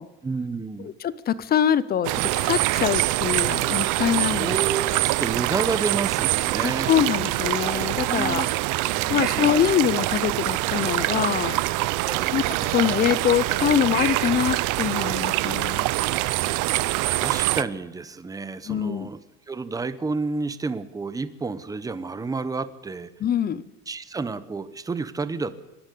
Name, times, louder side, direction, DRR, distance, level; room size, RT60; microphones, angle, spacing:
voice 1, 0.2-0.9 4.4-6.9 8.1-8.5 8.9-9.6 12.0-12.3 16.1-16.2 17.1-19.2 19.5-23.1 23.9-25.5, right 4 dB, 10° right, 14 dB, 0.9 m, -30 dB
voice 2, 0.8-4.5 6.6-8.5 9.1-11.6 12.3-15.9 18.7-19.1 23.2-23.6, left 9 dB, 30° left, 18 dB, 0.7 m, -24 dB
sound 1, 2.0-17.6, right 19 dB, 65° right, 0.8 m, -24 dB
25.5 x 12.0 x 8.4 m, 1.1 s
cardioid pair, 160°, 33 cm